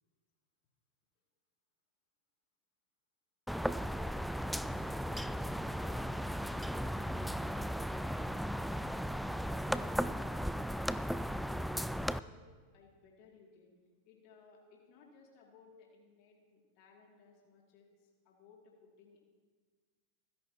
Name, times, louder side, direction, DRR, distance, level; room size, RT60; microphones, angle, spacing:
sound 1, 3.5-12.2, equal, ahead, 0.3 m, -36 dB
voice 1, 11.5-12.4 12.7-13.7 14.0-19.2, left 4 dB, 45° left, -1 dB, 2.5 m, -62 dB
26.5 x 10.5 x 2.9 m, 1.5 s
figure-of-eight pair, 90°, 0 cm